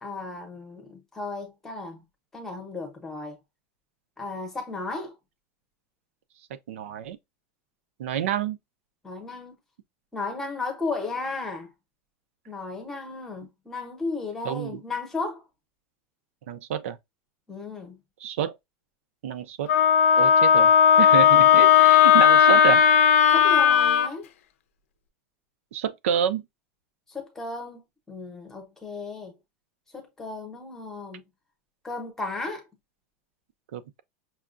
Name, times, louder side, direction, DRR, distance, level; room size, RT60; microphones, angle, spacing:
voice 1, 0.0-2.0 2.3-3.4 4.2-5.1 9.0-9.5 10.1-11.7 12.5-15.4 17.5-18.0 23.3-24.3 27.1-27.8 28.1-29.3 29.9-31.2 31.8-32.6, left 3 dB, 5° left, 0.8 m, -34 dB
voice 2, 6.7-7.2 8.0-8.6 14.4-14.8 16.5-17.0 18.2-18.6 19.2-19.7 20.2-20.7 21.0-22.8 25.7-26.4 33.7-34.0, right 9 dB, 85° right, 0.6 m, -28 dB
Wind instrument woodwind instrument, 19.7-24.1, left 8 dB, 85° left, 0.6 m, -16 dB
5.7 x 2.3 x 2.5 m
supercardioid pair, 175°, 7 cm